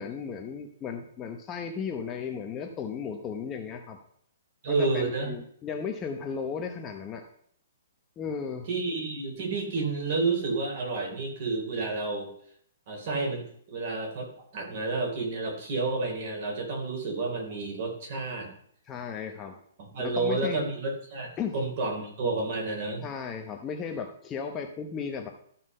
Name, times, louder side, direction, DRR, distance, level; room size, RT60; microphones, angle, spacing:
voice 1, 0.0-4.0 4.7-7.3 8.2-8.7 18.9-19.6 20.0-20.7 21.4-21.5 23.0-25.3, left 6 dB, 15° left, 3 dB, 0.9 m, -35 dB
voice 2, 4.6-5.3 8.7-12.3 12.9-14.3 14.5-18.5 19.8-23.0, right 3 dB, 40° right, 1 dB, 3.6 m, -30 dB
13.0 x 5.8 x 5.5 m, 0.64 s
hypercardioid pair, 165°, 0 cm